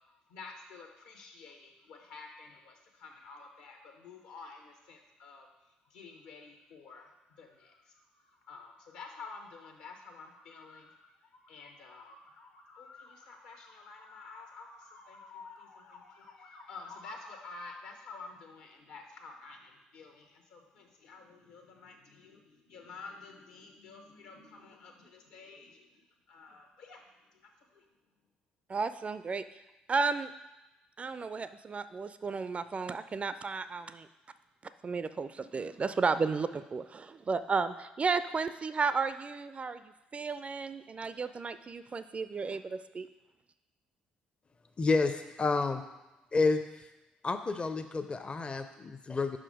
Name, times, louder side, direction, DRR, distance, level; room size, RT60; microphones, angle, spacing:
voice 1, 0.3-5.5 5.9-27.0 27.7-27.8, left 4 dB, 70° left, 2 dB, 1.0 m, -50 dB
voice 2, 28.7-29.4 29.9-30.3 31.0-34.1 34.8-39.8 40.1-43.1, right 4 dB, 30° right, 13 dB, 0.3 m, -33 dB
voice 3, 44.8-45.8 46.3-46.6 47.2-49.4, left 3 dB, 25° left, 8 dB, 0.5 m, -29 dB
5.5 x 5.0 x 4.9 m, 1.0 s
figure-of-eight pair, 50°, 4 cm